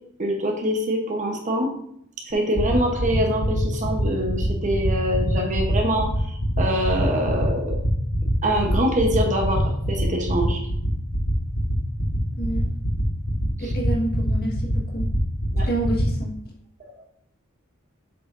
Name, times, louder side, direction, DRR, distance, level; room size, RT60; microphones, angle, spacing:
voice 1, 0.2-1.7 2.2-7.8 8.4-10.6 15.5-15.7 16.8-16.9, equal, 35° right, 2 dB, 1.0 m, -24 dB
sound 1, 2.3-16.0, equal, 90° left, 1.6 m, -23 dB
voice 2, 12.4-12.7 13.6-15.1 15.6-16.3, right 2 dB, 50° left, -2 dB, 1.7 m, -28 dB
7.6 x 4.8 x 2.7 m, 0.70 s
head